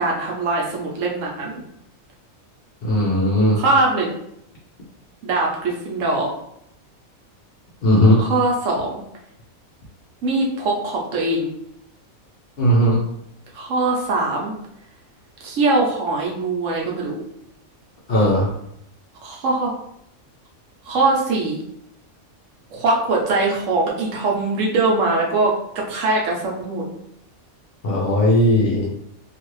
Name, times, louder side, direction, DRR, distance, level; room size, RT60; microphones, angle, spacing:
voice 1, 0.0-1.6 3.6-4.1 5.2-6.3 8.2-9.0 10.2-11.5 13.5-14.5 15.4-17.1 19.2-19.7 20.9-21.6 22.7-25.5 25.9-26.8, right 2 dB, 65° right, -2 dB, 1.0 m, -21 dB
voice 2, 2.8-3.6 7.8-8.2 12.6-13.0 18.1-18.5 27.8-28.9, equal, 55° left, -4 dB, 0.7 m, -17 dB
2.6 x 2.4 x 3.0 m, 0.75 s
omnidirectional pair, 1.5 m